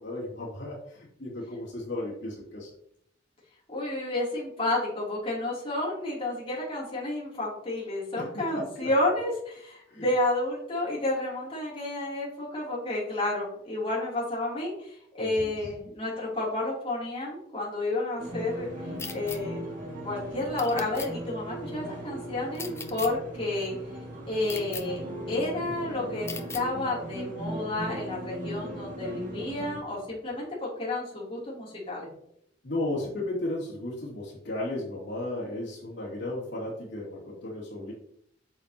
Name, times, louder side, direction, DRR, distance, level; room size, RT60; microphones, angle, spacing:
voice 1, 0.0-2.7 8.2-8.9 9.9-10.0 15.2-15.6 32.6-37.9, left 1 dB, 70° left, -5 dB, 2.8 m, -35 dB
voice 2, 3.7-18.7 19.1-19.6 20.0-23.7 24.2-25.0 25.3-32.1, left 2 dB, 30° left, -6 dB, 3.2 m, -31 dB
sound 1, 18.2-29.8, right 1 dB, 45° right, 2.2 m, -38 dB
sound 2, 19.0-19.4 20.6-21.1 22.5-23.1 24.5-24.8 26.3-26.6, left 5 dB, 15° left, 0.6 m, -38 dB
8.6 x 6.8 x 3.0 m, 0.71 s
head